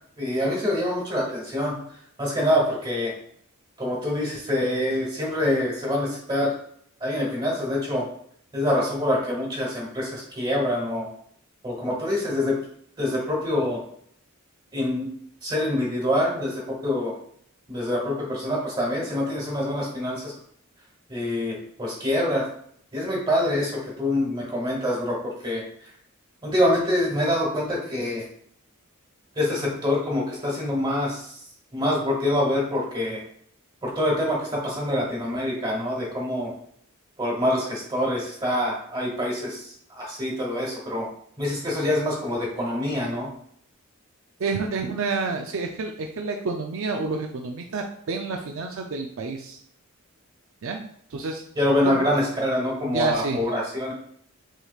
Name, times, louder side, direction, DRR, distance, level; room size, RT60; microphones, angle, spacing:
voice 1, 0.2-1.8 2.2-3.1 3.8-6.5 7.0-8.0 8.5-11.1 11.6-12.5 13.0-13.8 14.7-15.1 15.4-17.1 17.7-20.3 21.1-22.4 22.9-25.9 26.4-28.2 29.4-31.4 31.7-33.2 33.8-36.5 37.2-41.1 41.4-43.3 51.6-53.9, left 1 dB, 25° right, -4 dB, 1.3 m, -25 dB
voice 2, 44.4-49.6 50.6-51.4 51.8-52.1 52.8-53.4, right 4 dB, 65° right, 3 dB, 0.5 m, -29 dB
6.4 x 3.1 x 2.4 m, 0.65 s
head